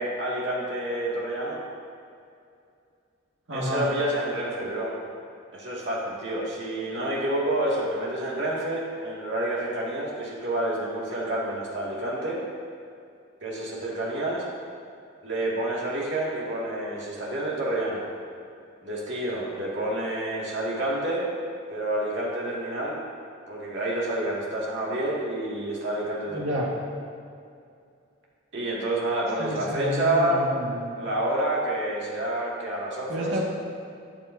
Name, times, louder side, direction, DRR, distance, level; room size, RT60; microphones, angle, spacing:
voice 1, 0.0-1.6 3.5-4.9 5.5-12.4 13.4-14.4 15.2-18.0 18.8-21.3 21.7-23.0 23.5-26.7 28.5-30.4 31.0-33.4, right 1 dB, 60° right, -5 dB, 2.2 m, -28 dB
voice 2, 3.5-3.9 26.3-26.7 29.4-30.9 33.1-33.4, equal, 90° right, -4 dB, 2.0 m, -30 dB
12.5 x 9.2 x 2.8 m, 2.4 s
head